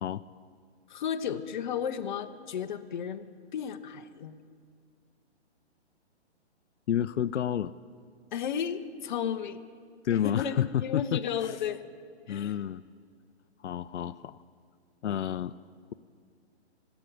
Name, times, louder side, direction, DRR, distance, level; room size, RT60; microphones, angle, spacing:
voice 1, 0.9-3.2 3.5-4.4 8.3-9.6 10.1-11.8 12.3-12.6 15.0-15.2, left 8 dB, 45° left, 9 dB, 0.8 m, -33 dB
voice 2, 6.9-7.7 10.0-11.2 12.3-12.8 13.6-14.4 15.0-15.5, left 10 dB, 85° left, 14 dB, 0.5 m, -30 dB
15.0 x 8.1 x 8.6 m, 2.1 s
hypercardioid pair, 150°, 34 cm